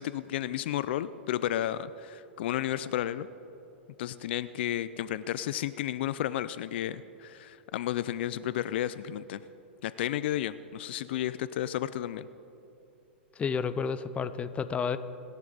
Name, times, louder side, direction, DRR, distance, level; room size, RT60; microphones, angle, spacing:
voice 1, 0.0-3.3 4.0-9.4 9.8-12.3, left 12 dB, 65° left, 15 dB, 0.5 m, -32 dB
voice 2, 13.4-15.0, left 6 dB, 20° left, 13 dB, 0.7 m, -31 dB
29.0 x 11.0 x 4.0 m, 2.9 s
hypercardioid pair, 115°, 6 cm